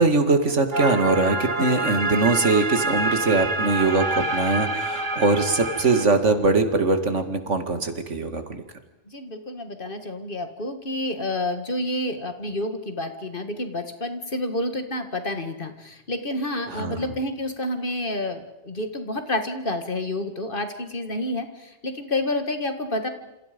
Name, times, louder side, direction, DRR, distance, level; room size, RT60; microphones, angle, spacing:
voice 1, 0.0-8.6 16.7-17.1, right 3 dB, 80° right, 8 dB, 2.5 m, -22 dB
sound 1, 0.7-6.0, right 2 dB, 40° right, 1.7 m, -27 dB
voice 2, 9.1-23.1, left 1 dB, 45° left, 7 dB, 2.2 m, -29 dB
28.0 x 28.0 x 5.3 m, 0.91 s
omnidirectional pair, 1.2 m